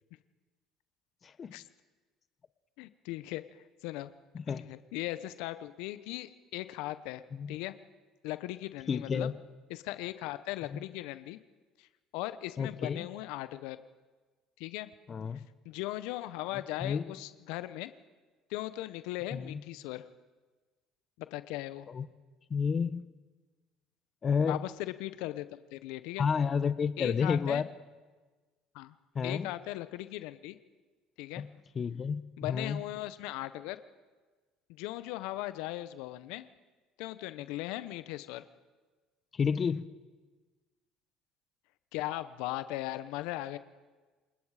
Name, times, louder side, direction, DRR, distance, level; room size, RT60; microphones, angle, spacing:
voice 1, 1.2-1.5 4.3-4.7 7.3-7.5 8.9-9.3 10.7-10.8 12.6-13.1 15.1-15.4 16.8-17.0 19.3-19.6 21.9-22.0 22.5-23.1 24.2-24.6 26.2-27.7 29.1-29.5 31.4-31.5 31.8-32.8 39.3-39.8, left 6 dB, 40° left, 14 dB, 0.9 m, -30 dB
voice 2, 2.8-4.1 4.5-7.2 7.5-7.7 8.2-9.3 9.7-11.4 11.8-11.9 12.1-13.8 14.6-14.9 15.6-17.9 18.5-20.1 21.2-21.9 24.4-25.4 25.7-26.3 27.0-27.6 28.7-28.9 29.2-30.6 31.2-31.4 32.4-33.8 34.7-36.5 37.0-38.4 41.9-43.6, left 16 dB, 75° left, 13 dB, 0.8 m, -38 dB
28.0 x 20.0 x 5.0 m, 1.3 s
supercardioid pair, 75°, 0 cm